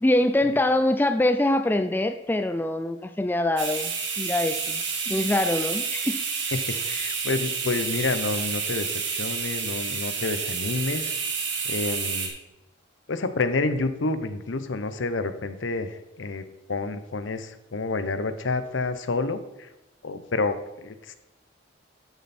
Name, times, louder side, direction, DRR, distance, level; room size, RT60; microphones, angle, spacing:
voice 1, 0.0-6.2, left 1 dB, 10° left, 9 dB, 0.4 m, -24 dB
sound 1, 3.6-12.3, right 5 dB, 75° right, 2.0 m, -29 dB
voice 2, 6.5-11.1 11.6-12.3 13.1-16.4 16.7-19.7 20.0-21.1, left 3 dB, 85° left, 11 dB, 0.8 m, -29 dB
12.0 x 6.9 x 4.3 m, 0.98 s
head